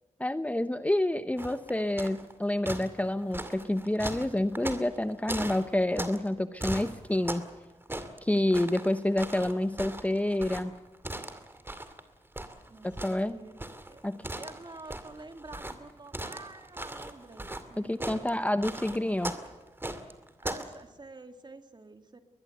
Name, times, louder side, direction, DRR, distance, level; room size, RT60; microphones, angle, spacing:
voice 1, 0.2-7.4 8.2-10.7 12.8-13.4 14.0-14.2 17.8-19.3, left 1 dB, 10° left, 11 dB, 0.8 m, -28 dB
sound 1, 1.4-2.3 2.7-6.3 6.6-7.6 7.8-12.0 12.4-20.7, right 1 dB, 20° right, 2.4 m, -38 dB
voice 2, 12.7-13.6 13.9-14.0 14.4-18.4 20.4-22.2, right 3 dB, 35° right, 7 dB, 2.4 m, -48 dB
22.0 x 20.5 x 8.0 m, 1.2 s
wide cardioid pair, 80°, 12 cm